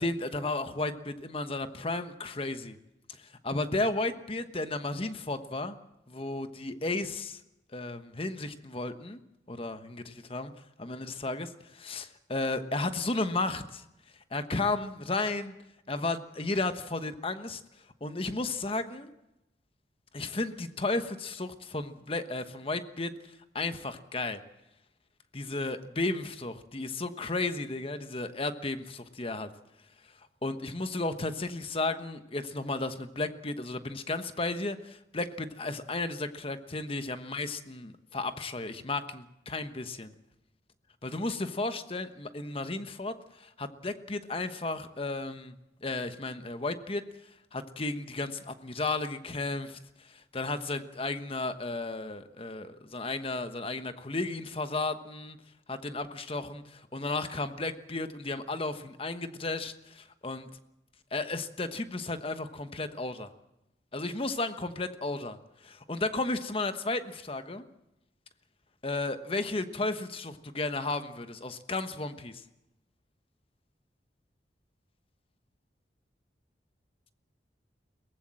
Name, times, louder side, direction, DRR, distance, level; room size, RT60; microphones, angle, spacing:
voice 1, 0.0-2.8 3.4-5.8 6.1-7.4 7.7-9.2 9.5-10.5 10.8-13.8 14.3-15.5 15.9-17.6 18.0-19.1 20.1-23.1 23.5-24.4 25.3-29.5 30.4-40.1 41.0-45.5 45.8-47.0 47.5-49.8 50.0-55.4 55.7-60.5 61.1-63.3 63.9-65.4 65.6-67.6 68.8-72.4, left 2 dB, 30° left, 10 dB, 1.2 m, -33 dB
22.5 x 18.5 x 7.6 m, 0.90 s
head